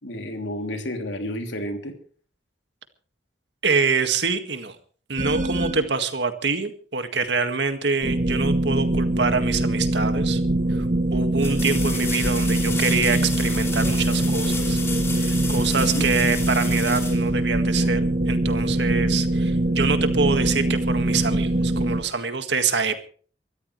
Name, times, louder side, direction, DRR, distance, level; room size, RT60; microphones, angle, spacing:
voice 1, 0.0-1.9 15.7-16.1, equal, 80° left, 4 dB, 3.0 m, -31 dB
voice 2, 3.6-4.8 5.1-10.4 10.7-14.8 15.2-23.0, right 4 dB, 75° right, 8 dB, 1.9 m, -25 dB
sound 1, 5.2-5.9 8.0-22.0, right 1 dB, 45° right, 1.6 m, -23 dB
sound 2, 10.0-10.1 11.4-18.0 20.9-21.0, left 3 dB, 15° left, 2.9 m, -33 dB
24.5 x 13.5 x 3.3 m, 0.43 s
head